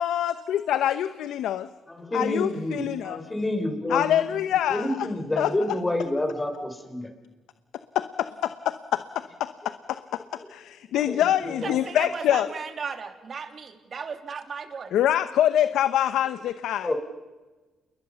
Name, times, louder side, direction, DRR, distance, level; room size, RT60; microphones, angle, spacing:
voice 1, 0.0-1.7 2.1-3.2 3.9-5.1 5.4-5.5 8.4-10.2 10.5-12.5 14.9-16.9, left 11 dB, 80° left, 12 dB, 0.9 m, -25 dB
voice 2, 1.9-4.2 4.7-7.1 11.1-11.8 16.8-16.9, left 1 dB, 15° left, 5 dB, 5.3 m, -29 dB
voice 3, 11.6-15.0, right 5 dB, 45° right, 7 dB, 2.9 m, -36 dB
28.5 x 22.0 x 7.1 m, 1.2 s
cardioid pair, 90°, 0 cm